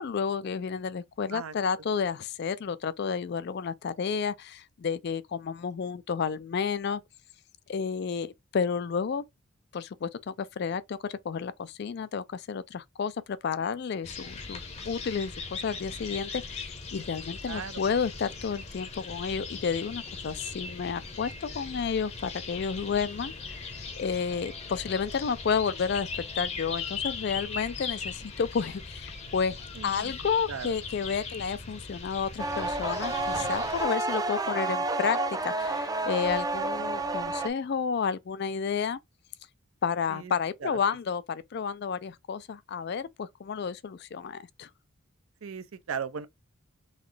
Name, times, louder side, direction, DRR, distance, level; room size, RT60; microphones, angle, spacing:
voice 1, 0.0-7.0 7.7-9.2 9.7-26.1 26.4-29.6 29.8-39.0 39.8-44.7, left 6 dB, 50° left, 0.3 m, -31 dB
sound 1, 14.0-33.8, left 4 dB, 30° left, 0.7 m, -39 dB
voice 2, 17.5-17.8 29.8-30.1 30.5-30.7 40.1-40.3 40.6-40.8 45.4-46.3, right 6 dB, 70° right, 0.5 m, -37 dB
sound 2, 32.4-37.5, right 2 dB, 15° right, 0.5 m, -30 dB
4.0 x 3.1 x 3.2 m
head